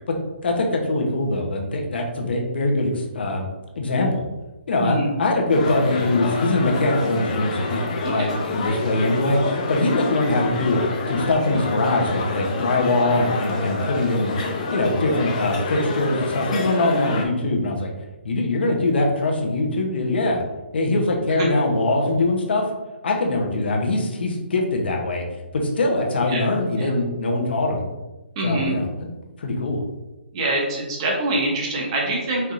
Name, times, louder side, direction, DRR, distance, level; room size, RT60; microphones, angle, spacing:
voice 1, 0.4-3.5 3.7-4.2 4.7-10.8 11.1-14.3 14.7-17.9 18.2-20.4 20.7-22.7 23.0-25.2 25.5-27.9 28.4-29.1 29.4-29.8, left 2 dB, 65° left, 1 dB, 0.9 m, -22 dB
voice 2, 4.8-5.1 8.0-8.3 16.8-17.0 21.3-21.5 26.3-26.4 26.7-26.9 28.4-28.7 30.3-32.5, right 1 dB, 30° right, -1 dB, 0.8 m, -25 dB
sound 1, 5.5-17.3, left 3 dB, 35° left, 0.6 m, -28 dB
4.3 x 3.4 x 2.5 m, 1.0 s
hypercardioid pair, 170°, 6 cm